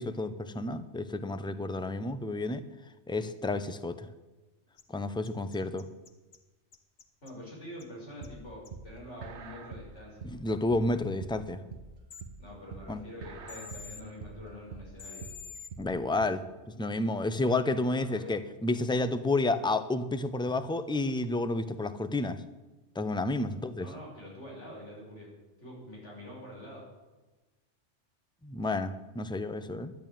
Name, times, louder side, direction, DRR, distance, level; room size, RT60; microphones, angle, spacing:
voice 1, 0.0-2.6 3.1-4.1 4.9-5.9 10.2-11.6 12.9-13.0 15.8-22.4 22.9-23.9 28.4-29.9, left 2 dB, 5° left, 11 dB, 0.5 m, -31 dB
sound 1, 4.8-4.9 5.2-6.4 6.7-7.3 7.8-7.9 8.2-8.3 8.7-8.8 12.1-12.2 13.5-14.0 15.0-15.7, left 6 dB, 60° left, 1.4 m, -46 dB
voice 2, 7.2-10.3 12.4-15.3 17.9-18.3 23.8-25.3 25.6-26.8, left 1 dB, 80° left, -3 dB, 5.9 m, -46 dB
sound 2, 8.2-16.3, right 5 dB, 70° right, 1.3 m, -45 dB
11.0 x 10.5 x 9.0 m, 1.2 s
omnidirectional pair, 1.2 m